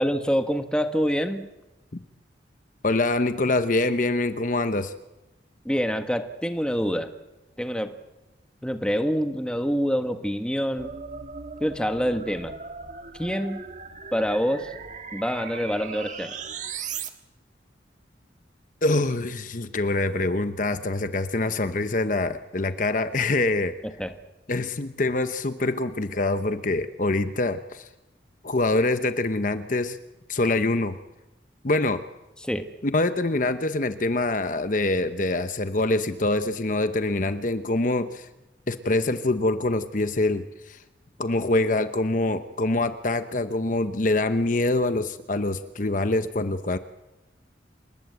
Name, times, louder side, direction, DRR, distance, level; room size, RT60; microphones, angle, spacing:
voice 1, 0.0-1.5 5.6-7.1 7.6-8.0 8.6-10.9 11.6-12.5 13.2-13.6 14.1-14.7 15.1-16.4 24.0-24.1 32.4-32.7, equal, 5° left, 7 dB, 1.4 m, -26 dB
voice 2, 2.8-4.9 18.8-23.7 24.5-27.9 28.4-30.0 30.3-31.0 31.6-32.0 32.8-38.3 38.7-40.8 41.2-46.8, left 2 dB, 45° left, 10 dB, 0.9 m, -25 dB
sound 1, 10.8-17.1, right 5 dB, 40° right, 1.7 m, -38 dB
28.5 x 20.0 x 8.0 m, 1.0 s
head